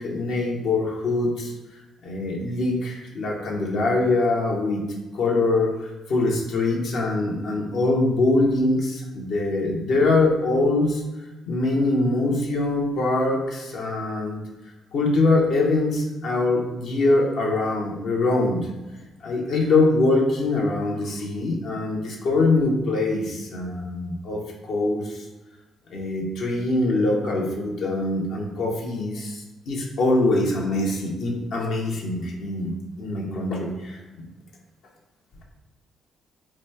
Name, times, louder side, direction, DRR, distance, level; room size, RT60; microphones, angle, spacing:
voice 1, 0.0-1.5 2.0-4.8 5.1-5.7 6.1-11.0 11.5-14.4 14.9-18.6 19.2-25.2 25.9-34.0, left 2 dB, 75° left, -1 dB, 0.9 m, -23 dB
3.1 x 2.3 x 4.2 m, 1.1 s
cardioid pair, 90°, 0 cm